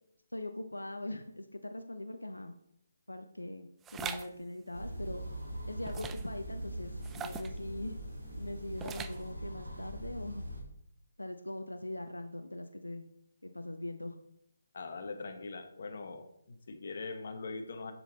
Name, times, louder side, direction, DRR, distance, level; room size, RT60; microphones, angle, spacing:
voice 1, 0.3-2.6 3.1-5.2 5.7-8.0 8.3-10.4 11.2-13.0 13.4-14.2, left 1 dB, 90° left, 7 dB, 0.6 m, -41 dB
sound 1, 3.8-4.3 5.8-6.3 7.0-7.6 8.8-9.3, right 7 dB, 10° right, 0.3 m, -41 dB
sound 2, 4.7-10.6, right 1 dB, 90° right, 2.3 m, -42 dB
voice 2, 14.7-17.9, left 3 dB, 50° left, 6 dB, 1.2 m, -42 dB
7.1 x 6.1 x 4.0 m, 0.77 s
figure-of-eight pair, 150°, 0 cm